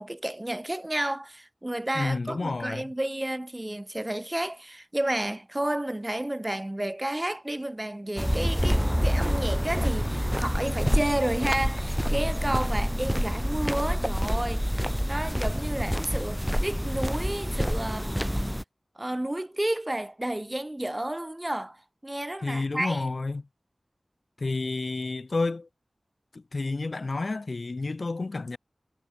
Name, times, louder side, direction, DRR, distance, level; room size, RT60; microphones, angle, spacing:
voice 1, 0.0-18.4 19.0-23.1, right 1 dB, 20° right, 3.6 m, -31 dB
voice 2, 1.9-2.9 22.4-23.5 24.4-25.7 26.3-28.6, left 3 dB, 65° left, 2.4 m, -30 dB
sound 1, 8.2-18.6, equal, ahead, 2.4 m, -27 dB
wide cardioid pair, 55°, 0 cm